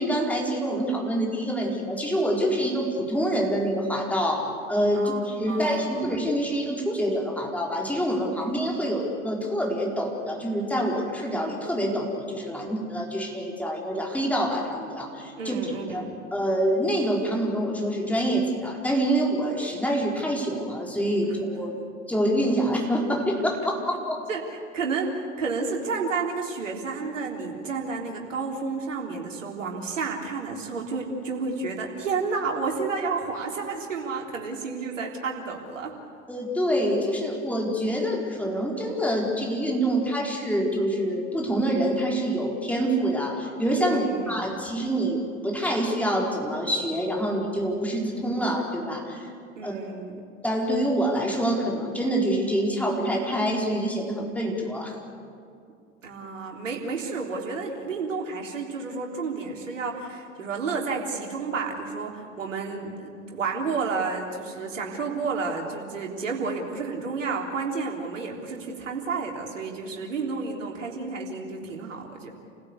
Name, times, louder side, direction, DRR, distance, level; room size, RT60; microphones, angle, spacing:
voice 1, 0.0-15.6 15.9-16.0 16.3-21.7 22.1-24.3 36.3-49.3 49.6-49.8 50.4-55.0, equal, 5° left, -1 dB, 4.4 m, -26 dB
voice 2, 5.5-6.1 15.4-16.2 24.3-36.0 43.9-44.6 49.6-50.2 56.0-72.3, right 4 dB, 70° right, 1 dB, 3.6 m, -31 dB
29.0 x 16.0 x 8.3 m, 2.4 s
figure-of-eight pair, 80°, 39 cm